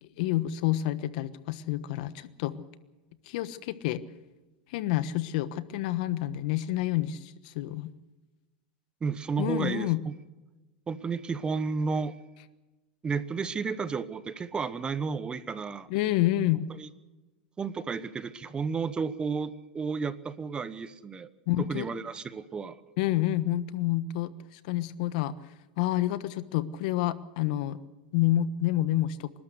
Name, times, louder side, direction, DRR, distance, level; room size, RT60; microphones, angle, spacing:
voice 1, 0.0-2.6 3.3-4.0 4.7-7.9 9.4-10.0 15.9-16.7 21.5-21.8 23.0-25.4 25.8-27.8 28.1-29.3, left 14 dB, 60° left, 15 dB, 1.3 m, -28 dB
voice 2, 9.0-10.1 10.9-12.2 13.0-15.9 16.8-16.9 17.6-21.3 21.6-22.8, right 5 dB, 20° right, 15 dB, 1.0 m, -32 dB
27.5 x 12.5 x 8.0 m, 1.1 s
hypercardioid pair, 120°, 5 cm